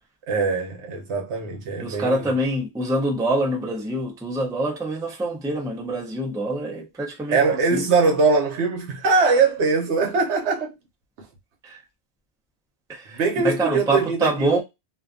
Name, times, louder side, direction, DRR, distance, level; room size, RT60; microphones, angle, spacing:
voice 1, 0.3-2.3 7.3-10.8 13.1-14.6, right 4 dB, 80° right, 1.0 m, -22 dB
voice 2, 1.8-7.4 7.7-7.8 11.6-11.8 12.9-14.6, right 1 dB, 5° right, 0.4 m, -25 dB
2.5 x 2.2 x 2.4 m
omnidirectional pair, 1.1 m